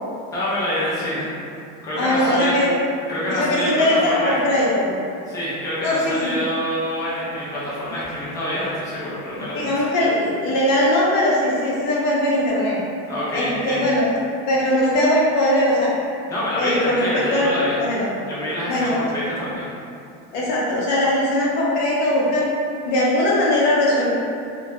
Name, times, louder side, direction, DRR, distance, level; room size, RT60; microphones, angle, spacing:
voice 1, 0.3-1.3 1.8-2.5 3.1-3.7 4.0-4.4 5.3-9.7 13.1-13.9 16.3-17.8 18.3-19.7, equal, 10° left, -10 dB, 0.4 m, -26 dB
voice 2, 2.0-2.7 3.3-4.9 5.8-6.4 9.5-12.8 13.3-14.1 14.5-15.9 16.6-17.5 17.8-18.1 18.7-19.1 20.3-22.5 22.9-24.1, left 1 dB, 55° left, -5 dB, 0.6 m, -20 dB
2.2 x 2.2 x 2.6 m, 2.5 s
cardioid pair, 170°, 32 cm